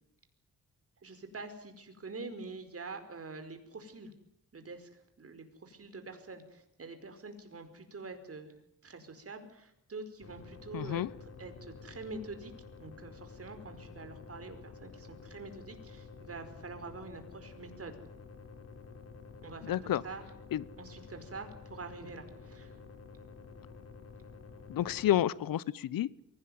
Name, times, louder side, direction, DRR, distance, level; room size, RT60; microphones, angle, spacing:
voice 1, 1.0-4.1 4.5-8.5 8.8-12.5 12.8-18.0 19.4-20.2 20.8-22.8, right 3 dB, 45° right, 7 dB, 4.9 m, -46 dB
sound 1, 10.2-25.2, left 4 dB, 45° left, 3.7 m, -50 dB
voice 2, 10.7-11.1 19.6-20.0 20.5-20.6 24.7-26.1, left 12 dB, 90° left, 21 dB, 0.9 m, -30 dB
23.5 x 17.5 x 9.5 m, 0.78 s
cardioid pair, 85°, 33 cm